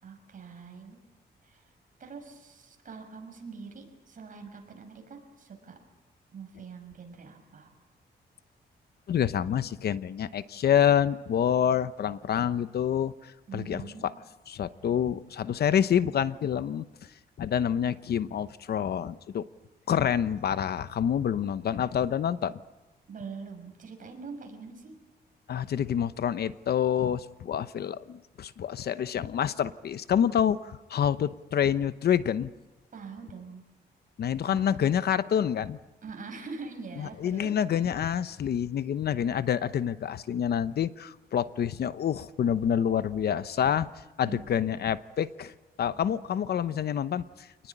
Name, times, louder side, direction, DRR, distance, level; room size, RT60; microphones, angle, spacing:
voice 1, 0.0-1.0 1.4-1.7 2.0-5.8 6.3-7.7 13.5-14.1 23.1-25.0 32.9-33.6 34.5-34.7 36.0-37.5 44.2-44.7, right 5 dB, 50° right, 4 dB, 6.3 m, -44 dB
voice 2, 9.1-14.1 14.5-16.9 17.4-19.5 19.9-22.6 25.5-32.5 34.2-35.8 37.0-43.9 44.2-45.5 45.8-47.5, left 9 dB, 65° left, 14 dB, 0.9 m, -27 dB
28.0 x 19.5 x 9.9 m, 1.1 s
cardioid pair, 115°, 18 cm